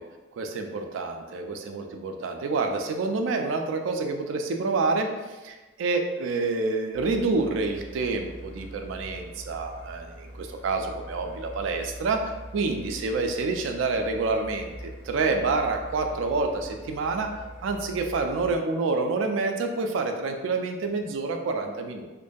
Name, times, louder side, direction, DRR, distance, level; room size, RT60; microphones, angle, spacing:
voice 1, 0.4-17.3 17.6-22.1, right 3 dB, 75° right, 4 dB, 0.3 m, -28 dB
sound 1, 6.9-18.6, right 1 dB, 60° left, 0.8 m, -43 dB
2.5 x 2.5 x 2.2 m, 1.2 s
head